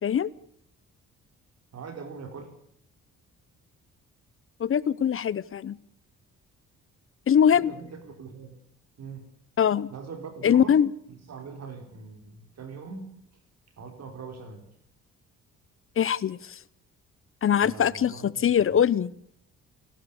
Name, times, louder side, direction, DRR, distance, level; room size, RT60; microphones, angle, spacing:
voice 1, 1.7-2.5 7.5-8.6 9.0-9.3 9.9-10.7 11.1-13.1 13.8-14.6 17.6-18.8, right 5 dB, 60° right, 6 dB, 4.1 m, -42 dB
voice 2, 4.6-5.8 7.3-7.7 9.6-9.9 10.4-10.9 16.0-16.6 17.4-19.1, left 8 dB, 45° left, 21 dB, 0.8 m, -22 dB
29.0 x 12.5 x 8.4 m, 0.68 s
cardioid pair, 90°, 30 cm